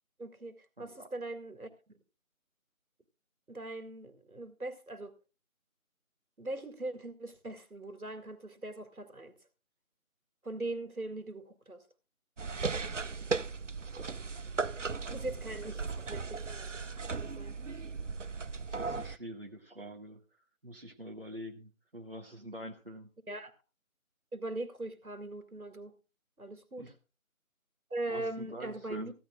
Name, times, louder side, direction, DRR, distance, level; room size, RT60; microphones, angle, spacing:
voice 1, 0.2-2.0 3.5-5.1 6.4-9.3 10.4-11.8 15.1-16.7 17.1-17.6 23.3-23.5 24.3-25.9 26.4-26.9 27.9-29.1, right 2 dB, 90° right, 10 dB, 2.2 m, -41 dB
voice 2, 0.8-1.1 15.1-15.7 18.6-20.2 20.6-23.1 26.8-26.9 28.1-29.1, equal, 40° right, 1 dB, 1.5 m, -46 dB
sound 1, 12.4-19.2, right 4 dB, 60° right, 0.5 m, -37 dB
15.5 x 13.5 x 2.4 m, 0.31 s
figure-of-eight pair, 175°, 42 cm